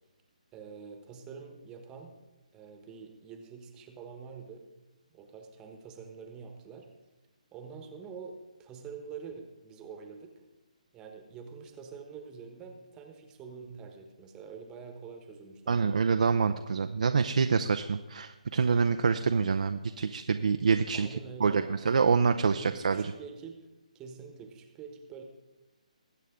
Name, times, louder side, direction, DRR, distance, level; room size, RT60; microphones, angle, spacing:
voice 1, 0.5-2.1 2.5-4.6 5.1-6.9 7.5-8.3 8.6-10.5 10.9-15.9 20.9-21.9 22.4-23.6 23.9-25.2, right 6 dB, 15° right, 4 dB, 1.2 m, -46 dB
voice 2, 15.7-21.1 21.4-23.1, right 5 dB, 65° right, 8 dB, 0.6 m, -26 dB
21.0 x 8.3 x 3.7 m, 1.1 s
figure-of-eight pair, 150°, 4 cm